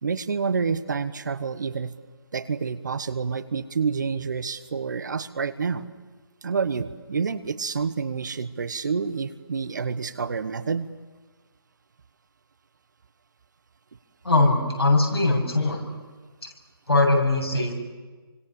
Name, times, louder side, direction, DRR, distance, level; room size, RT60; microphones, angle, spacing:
voice 1, 0.0-1.9 2.3-5.8 6.4-10.9, right 5 dB, 50° right, 13 dB, 1.2 m, -28 dB
voice 2, 14.2-15.8 16.9-17.7, left 2 dB, 80° left, 1 dB, 7.9 m, -21 dB
27.5 x 25.0 x 7.0 m, 1.3 s
figure-of-eight pair, 150°, 13 cm